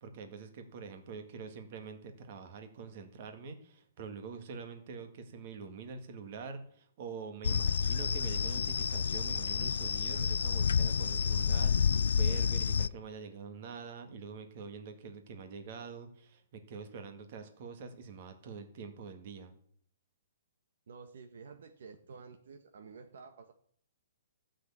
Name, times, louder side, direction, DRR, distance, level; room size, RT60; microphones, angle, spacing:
voice 1, 0.0-19.5, right 5 dB, 35° right, 6 dB, 1.9 m, -45 dB
sound 1, 7.4-12.9, left 6 dB, 85° left, 0.4 m, -29 dB
voice 2, 20.9-23.5, right 5 dB, 60° right, 7 dB, 1.3 m, -51 dB
15.0 x 6.5 x 8.5 m, 0.63 s
hypercardioid pair, 175°, 0 cm